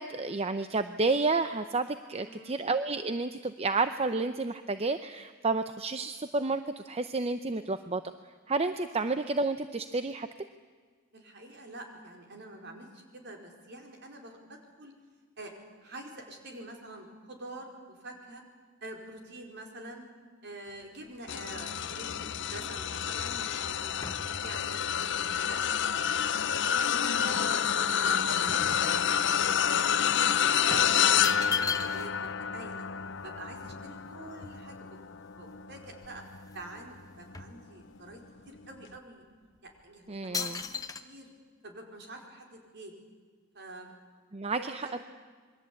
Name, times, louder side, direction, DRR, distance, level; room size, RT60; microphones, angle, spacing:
voice 1, 0.0-8.0 8.5-10.3 40.1-40.6 44.3-45.0, right 3 dB, 30° right, 10 dB, 0.7 m, -30 dB
voice 2, 2.2-2.6 8.9-9.0 11.1-14.9 15.4-15.5 15.8-18.4 18.8-20.1 20.4-24.0 24.4-25.7 26.1-26.4 26.8-30.1 30.5-32.8 33.2-36.2 36.5-38.2 38.4-39.2 39.6-41.3 41.6-42.9 43.5-43.9 44.5-45.0, right 2 dB, 55° right, 2 dB, 4.8 m, -46 dB
sound 1, 21.3-36.8 37.3-37.6 38.8-38.9, left 8 dB, 60° left, 0.8 m, -29 dB
sound 2, 21.8-26.9 27.3-29.5 29.8-30.0 30.7-32.3 32.6-32.7 32.9-35.0 35.6-35.7 35.9-36.7 37.0-38.2 38.8-38.9 39.6-39.8 40.3-41.0, left 5 dB, 15° left, 1.0 m, -40 dB
27.5 x 22.0 x 8.6 m, 1.5 s
head